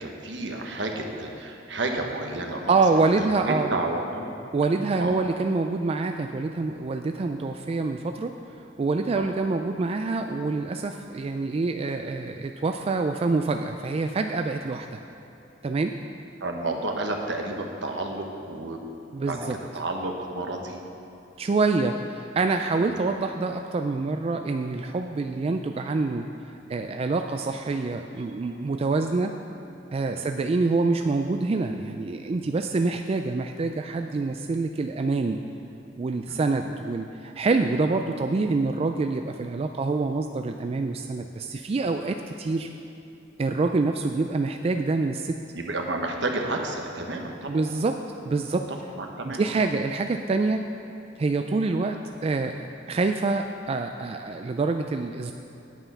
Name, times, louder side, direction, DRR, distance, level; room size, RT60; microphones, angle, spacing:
voice 1, 0.0-2.7 3.2-4.3 5.0-5.2 9.2-9.3 16.4-18.8 19.3-20.9 22.8-22.9 30.1-30.3 36.2-36.4 45.5-47.6 48.5-48.6 49.0-49.4, right 2 dB, 70° right, 2 dB, 1.2 m, -31 dB
voice 2, 2.7-3.7 4.5-15.0 15.6-15.9 19.1-19.5 21.4-29.3 29.9-35.4 36.0-42.7 43.4-45.4 47.5-48.0 48.3-48.7 49.2-50.7 51.2-55.3, right 3 dB, 35° right, 5 dB, 0.3 m, -26 dB
9.2 x 8.9 x 5.5 m, 2.9 s
head